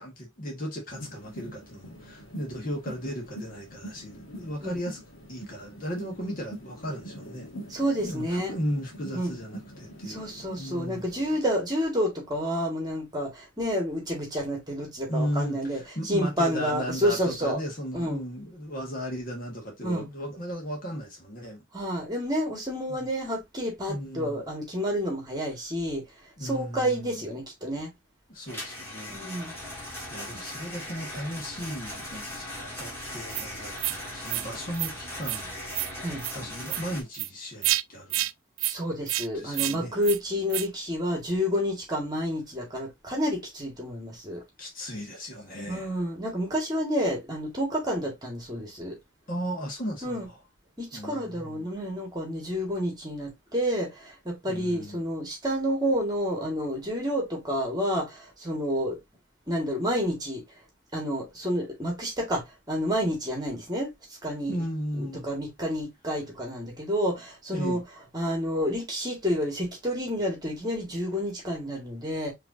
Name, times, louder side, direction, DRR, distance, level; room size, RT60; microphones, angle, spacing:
voice 1, 0.0-5.0 5.3-7.5 8.0-10.2 10.6-11.0 15.1-21.6 22.9-23.1 23.9-24.4 26.4-27.1 28.3-29.2 29.5-35.5 36.3-38.3 39.3-39.9 44.6-45.9 49.3-50.4 50.9-51.7 54.5-55.0 64.5-65.2 67.5-67.8, equal, 45° left, 1.6 m, -35 dB
sound 1, 0.9-11.4, equal, 80° left, 1.4 m, -44 dB
voice 2, 7.7-8.6 9.1-9.4 10.1-17.6 17.9-18.2 19.8-20.1 21.7-26.0 26.4-27.9 29.1-29.5 36.0-36.2 38.6-44.4 45.7-49.0 50.0-50.3 50.8-59.0 59.5-60.4 60.9-63.9 64.2-64.6 64.9-72.3, equal, 20° right, 1.9 m, -29 dB
sound 2, 28.5-37.0, left 1 dB, 10° left, 1.9 m, -39 dB
sound 3, 33.3-33.4 33.8-34.0 34.3-34.5 34.7-34.9 35.2-35.4 35.7-35.9 36.2-36.3 36.7-36.8 37.1-37.3 37.6-37.8 38.1-38.3 38.6-38.7 39.1-39.3 39.5-39.7 40.0-40.2 40.5-40.7, right 16 dB, 75° right, 0.3 m, -29 dB
4.9 x 3.3 x 2.7 m
head